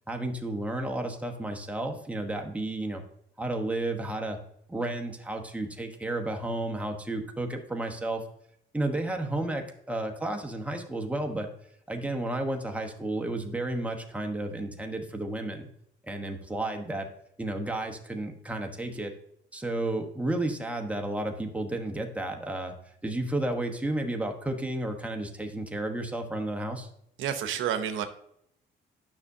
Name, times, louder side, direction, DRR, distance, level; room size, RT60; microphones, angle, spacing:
voice 1, 0.1-3.0 3.4-4.4 4.7-8.2 8.7-11.5 11.9-15.7 16.0-17.1 17.4-19.1 19.5-22.7 23.0-26.9, right 2 dB, 5° right, 3 dB, 1.1 m, -32 dB
voice 2, 27.2-28.0, right 9 dB, 80° right, 8 dB, 0.8 m, -29 dB
9.7 x 6.0 x 2.7 m, 0.72 s
cardioid pair, 90°, 20 cm